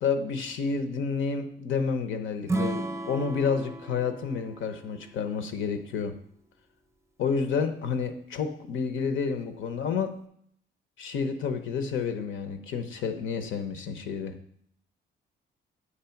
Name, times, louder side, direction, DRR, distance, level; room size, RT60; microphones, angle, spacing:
voice 1, 0.0-6.1 7.2-10.1 11.0-14.3, left 5 dB, 75° left, 8 dB, 0.9 m, -30 dB
Acoustic guitar / Strum, 2.5-5.7, right 2 dB, 15° right, 0.6 m, -34 dB
8.1 x 3.2 x 5.8 m, 0.67 s
cardioid pair, 130°, 20 cm